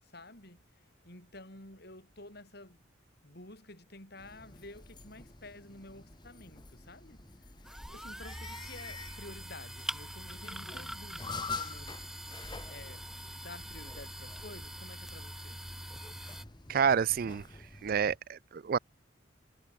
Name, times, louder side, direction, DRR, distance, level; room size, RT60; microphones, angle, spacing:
voice 1, 0.0-2.9 3.2-12.1 12.4-15.7, left 2 dB, 50° left, 7.7 m, -51 dB
sound 1, 4.2-18.2, left 4 dB, 20° left, 1.6 m, -47 dB
sound 2, 7.6-16.5, equal, ahead, 0.8 m, -44 dB
voice 2, 16.7-17.4 17.8-18.8, right 7 dB, 45° right, 0.3 m, -28 dB
head